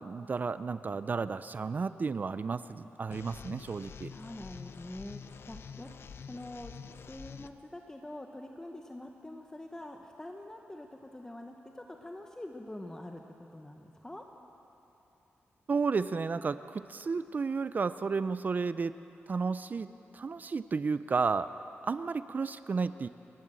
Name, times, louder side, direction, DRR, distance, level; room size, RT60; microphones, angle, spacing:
voice 1, 0.0-4.1 15.7-18.9 19.3-19.9 20.1-21.5 21.8-23.1, right 4 dB, 40° right, 13 dB, 0.5 m, -32 dB
sound 1, 3.1-7.5, left 6 dB, 60° left, 0.6 m, -47 dB
voice 2, 4.1-5.9 6.2-14.3, left 1 dB, 15° left, 3 dB, 1.0 m, -45 dB
28.0 x 12.0 x 7.6 m, 3.0 s
wide cardioid pair, 110°, 5 cm